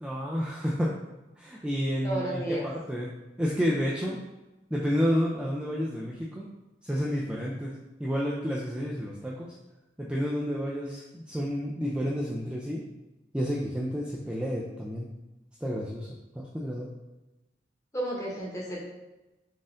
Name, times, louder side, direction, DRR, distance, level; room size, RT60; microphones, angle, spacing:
voice 1, 0.0-0.9 1.4-3.1 3.4-4.2 4.7-6.5 6.8-7.7 8.0-9.5 10.0-12.8 13.3-15.1 15.6-16.1 16.4-16.9, equal, 5° right, -5 dB, 0.3 m, -30 dB
voice 2, 2.0-2.6 17.9-18.8, right 1 dB, 20° left, -5 dB, 1.0 m, -32 dB
4.0 x 2.5 x 3.8 m, 1.0 s
head